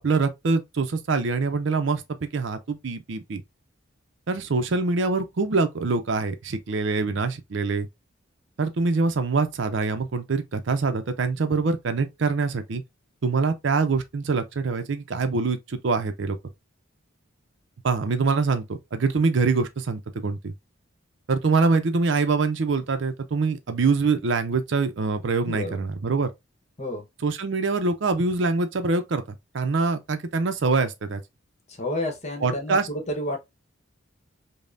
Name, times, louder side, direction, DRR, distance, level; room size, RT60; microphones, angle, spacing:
voice 1, 0.0-3.4 4.3-7.9 8.6-12.8 13.2-16.4 17.8-20.5 21.3-26.3 27.2-31.2 32.4-32.9, right 4 dB, 65° right, 0.5 m, -24 dB
voice 2, 25.4-25.8 26.8-27.0 31.7-33.4, left 1 dB, 35° left, 0.9 m, -30 dB
5.2 x 2.1 x 2.5 m
head